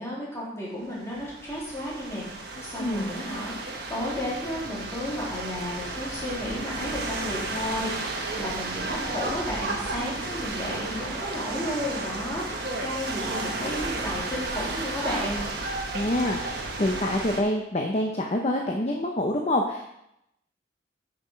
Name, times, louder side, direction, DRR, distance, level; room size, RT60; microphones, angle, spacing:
voice 1, 0.0-2.2 2.6-3.5 3.9-15.4, left 1 dB, 15° left, -6 dB, 3.1 m, -33 dB
sound 1, 1.0-17.4, right 2 dB, 55° right, 1.4 m, -33 dB
voice 2, 2.5-3.1 15.9-19.8, left 1 dB, 35° left, 1 dB, 0.7 m, -27 dB
8.4 x 6.0 x 5.1 m, 0.81 s
head